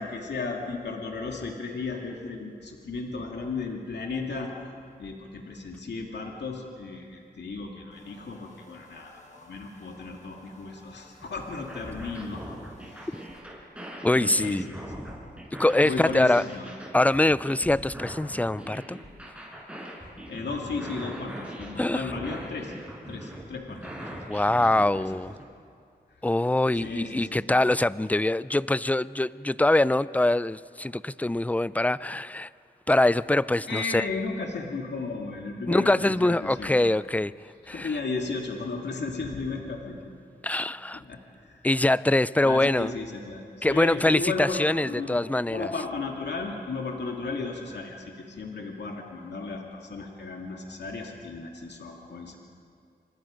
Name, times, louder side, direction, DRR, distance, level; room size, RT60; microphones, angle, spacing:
voice 1, 0.0-4.5 5.0-12.4 12.8-13.1 14.1-15.1 15.8-16.7 20.3-22.7 23.1-25.1 26.8-27.4 33.7-36.9 37.6-40.0 40.9-41.7 42.4-52.4, left 4 dB, 80° left, 1 dB, 2.4 m, -35 dB
sound 1, 7.9-13.4, left 2 dB, 45° left, 4.8 m, -56 dB
sound 2, 11.2-25.4, right 1 dB, 5° right, 6.3 m, -41 dB
voice 2, 14.0-14.6 15.6-16.4 16.9-19.0 21.8-22.0 24.3-25.3 26.2-32.5 32.9-34.1 35.7-37.3 37.7-37.9 40.4-41.0 41.6-42.9 43.6-45.7, left 1 dB, 10° left, 18 dB, 0.5 m, -23 dB
27.5 x 25.5 x 5.2 m, 2.4 s
wide cardioid pair, 70°, 18 cm